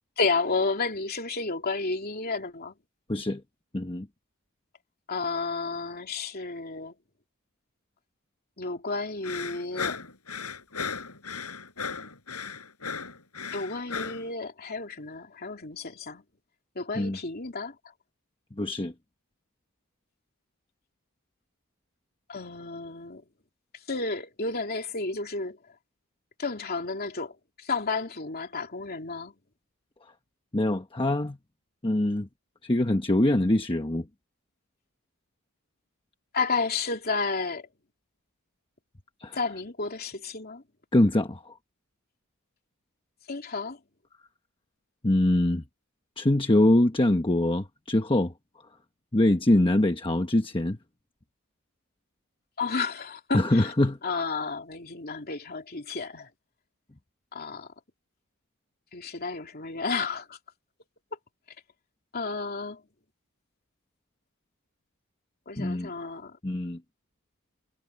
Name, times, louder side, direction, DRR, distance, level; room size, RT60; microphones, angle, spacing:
voice 1, 0.2-2.7 5.1-6.9 8.6-10.0 13.5-16.2 16.7-17.8 22.3-23.2 23.9-25.6 26.4-29.3 36.3-37.7 39.3-40.6 43.3-43.8 52.6-53.7 54.0-56.3 57.3-57.7 58.9-60.4 62.1-62.8 65.5-66.4, left 4 dB, 45° left, 3.0 m, -31 dB
voice 2, 3.1-3.4 3.7-4.1 17.0-17.2 18.6-18.9 30.5-31.4 31.8-32.3 32.6-34.1 39.2-39.4 40.9-41.5 45.0-45.6 46.2-48.3 49.1-50.8 53.3-54.2 65.6-65.9 66.4-66.8, left 1 dB, 25° left, 1.1 m, -24 dB
sound 1, 9.2-14.3, left 5 dB, 85° left, 7.1 m, -35 dB
head